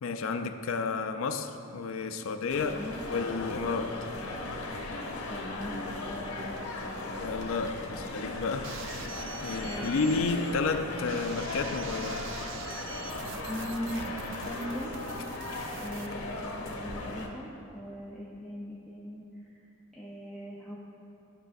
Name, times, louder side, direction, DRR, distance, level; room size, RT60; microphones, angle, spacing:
voice 1, 0.0-2.8 3.1-4.1 7.2-12.3, left 4 dB, 70° left, 0.4 m, -32 dB
sound 1, 2.5-17.3, left 2 dB, 90° left, 0.9 m, -37 dB
voice 2, 2.6-3.0 5.3-7.1 9.4-9.9 13.5-14.1 14.4-15.0 15.8-20.8, equal, ahead, 0.6 m, -40 dB
sound 2, 8.6-16.1, right 6 dB, 60° right, 0.3 m, -44 dB
13.0 x 5.4 x 2.6 m
head